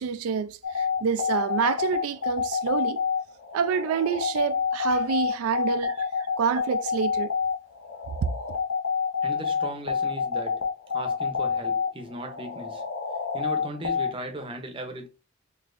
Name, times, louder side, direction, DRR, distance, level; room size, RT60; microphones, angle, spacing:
voice 1, 0.0-3.0 3.5-6.0 6.4-7.3, right 6 dB, 90° right, 0.3 m, -27 dB
sound 1, 0.6-14.1, left 6 dB, 70° left, 0.6 m, -28 dB
voice 2, 9.2-10.6 10.9-12.8 13.3-15.1, right 1 dB, 25° right, 0.6 m, -37 dB
4.0 x 2.7 x 2.5 m
head